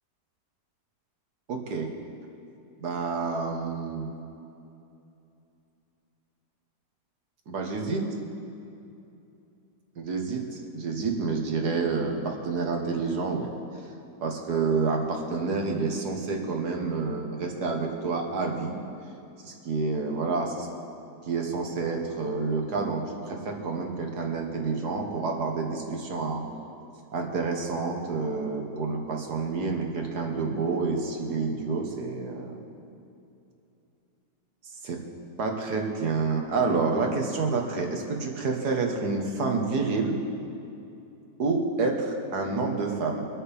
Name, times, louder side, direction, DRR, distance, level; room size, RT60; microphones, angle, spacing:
voice 1, 1.5-1.9 2.8-4.1 7.5-8.0 10.0-13.5 14.2-18.8 19.4-20.7 21.3-26.4 27.1-32.6 34.8-35.0 35.4-40.2 41.4-43.2, right 4 dB, 65° right, 2 dB, 1.9 m, -28 dB
24.0 x 9.0 x 3.6 m, 2.7 s
omnidirectional pair, 1.9 m